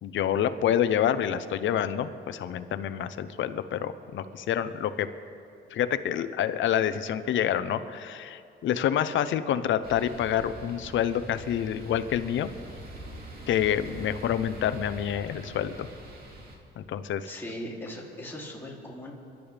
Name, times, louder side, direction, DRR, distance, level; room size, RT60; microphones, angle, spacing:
voice 1, 0.0-5.1 5.7-12.5 13.5-15.9 16.8-17.3, left 10 dB, 75° left, 12 dB, 0.8 m, -27 dB
sound 1, 9.8-16.6, right 1 dB, 50° right, 3.0 m, -44 dB
voice 2, 17.3-19.1, equal, 10° left, -4 dB, 3.1 m, -39 dB
28.5 x 12.0 x 3.5 m, 2.5 s
cardioid pair, 90°, 20 cm